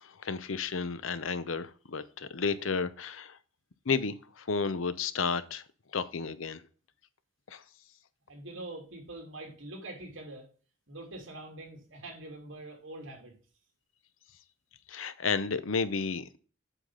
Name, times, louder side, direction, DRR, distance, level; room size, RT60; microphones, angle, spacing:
voice 1, 0.0-3.4 3.9-5.6 5.9-6.6 7.5-7.6 14.9-16.4, left 5 dB, 75° left, 0.7 m, -32 dB
voice 2, 8.3-10.5 10.9-13.4, right 2 dB, 70° right, 3.1 m, -44 dB
8.1 x 5.9 x 3.8 m
head